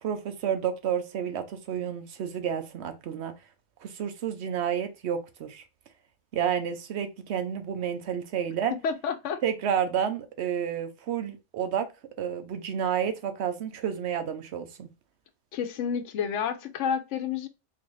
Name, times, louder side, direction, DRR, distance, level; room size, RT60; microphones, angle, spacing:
voice 1, 0.0-3.3 3.8-5.6 6.3-8.7 9.4-11.9 12.2-14.9, right 8 dB, 70° right, 0.9 m, -30 dB
voice 2, 8.7-9.4 15.5-17.5, left 7 dB, 85° left, 0.9 m, -30 dB
3.9 x 2.6 x 3.0 m
omnidirectional pair, 1.2 m